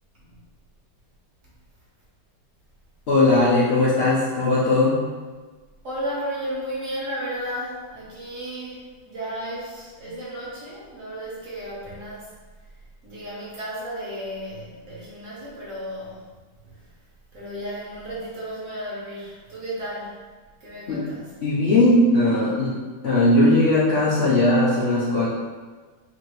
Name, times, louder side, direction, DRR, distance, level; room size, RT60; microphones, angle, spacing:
voice 1, 3.1-5.0 20.9-21.0 21.4-25.3, left 2 dB, 75° left, -8 dB, 0.6 m, -19 dB
voice 2, 5.8-12.3 13.0-16.2 16.6-16.8 17.3-20.2 20.6-21.3, equal, 50° right, -8 dB, 1.4 m, -34 dB
4.1 x 2.7 x 3.1 m, 1.4 s
omnidirectional pair, 2.0 m